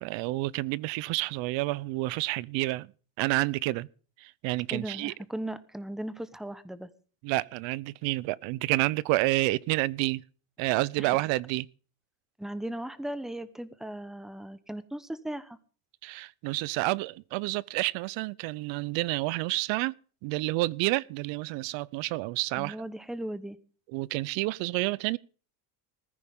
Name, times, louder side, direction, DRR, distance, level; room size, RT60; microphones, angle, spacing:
voice 1, 0.0-2.9 3.2-3.9 4.2-5.1 7.2-10.2 10.6-11.7 16.0-19.9 20.2-22.8 23.9-25.2, right 20 dB, 65° right, 0.8 m, -29 dB
voice 2, 4.7-6.9 11.0-11.1 12.4-15.6 22.5-23.6, right 1 dB, ahead, 1.0 m, -37 dB
20.5 x 14.5 x 3.7 m
cardioid pair, 135°, 49 cm